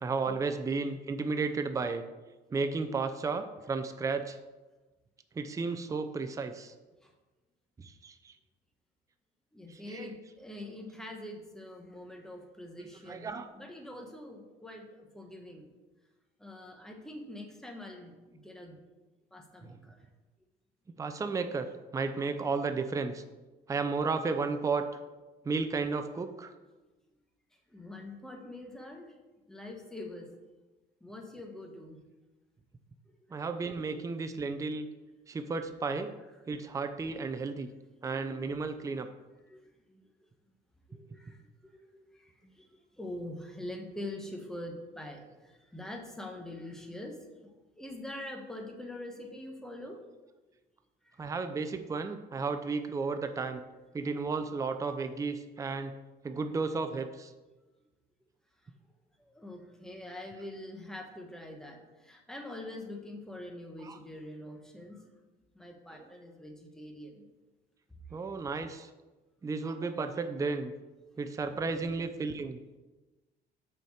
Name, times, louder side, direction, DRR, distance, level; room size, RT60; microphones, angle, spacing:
voice 1, 0.0-2.0 2.5-4.4 5.4-6.7 7.8-8.3 9.9-10.1 12.8-13.5 21.0-21.7 21.9-23.2 23.7-24.9 25.4-26.5 33.3-34.9 35.3-36.1 36.5-37.7 38.0-39.1 51.2-53.6 53.9-55.9 56.2-57.3 63.8-64.0 68.1-68.9 69.4-70.7 71.2-72.6, right 4 dB, 20° right, 8 dB, 0.5 m, -33 dB
voice 2, 9.5-15.7 16.4-18.8 19.3-19.9 26.7-26.8 27.7-29.1 29.5-30.3 31.0-32.0 37.3-37.4 39.5-40.0 40.9-41.4 41.6-42.7 43.0-47.2 47.4-50.0 59.2-65.0 65.5-67.2, left 1 dB, 5° left, 2 dB, 1.2 m, -44 dB
6.5 x 4.3 x 6.4 m, 1.2 s
cardioid pair, 110°, 17 cm